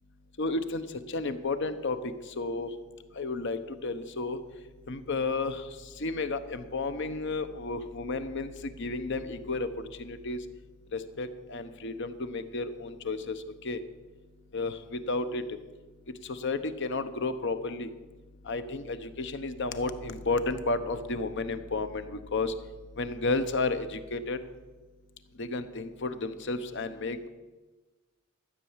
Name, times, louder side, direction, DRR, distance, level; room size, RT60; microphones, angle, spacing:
voice 1, 0.4-2.0 2.4-2.7 3.2-4.4 4.9-5.6 6.0-8.5 8.8-9.7 10.0-10.4 10.9-13.4 13.6-13.8 14.5-15.4 16.2-17.9 18.5-22.5 23.0-24.4 25.4-27.3, left 3 dB, 60° left, 10 dB, 0.9 m, -32 dB
13.5 x 8.4 x 7.3 m, 1.2 s
head